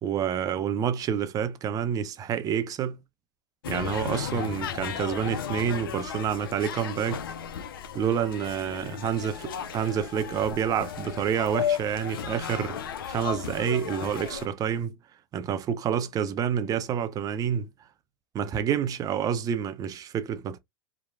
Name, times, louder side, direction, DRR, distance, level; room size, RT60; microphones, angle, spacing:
voice 1, 0.0-3.0 3.7-7.3 7.9-12.8 13.1-15.0 15.3-17.7 18.3-20.6, right 8 dB, 30° right, 0.5 m, -28 dB
sound 1, 3.6-14.5, left 8 dB, 85° left, 0.4 m, -34 dB
3.0 x 2.1 x 2.4 m
hypercardioid pair, 100°, 12 cm